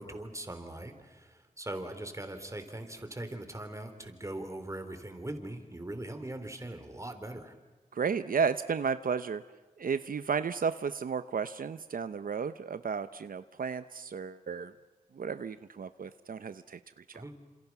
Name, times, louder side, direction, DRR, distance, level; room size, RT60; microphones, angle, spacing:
voice 1, 0.0-7.5 17.1-17.3, right 1 dB, 20° right, 7 dB, 3.5 m, -41 dB
voice 2, 7.9-9.4 9.8-14.7 15.1-17.2, right 6 dB, 75° right, 12 dB, 0.7 m, -33 dB
28.5 x 27.5 x 6.0 m, 1.3 s
wide cardioid pair, 75°, 15 cm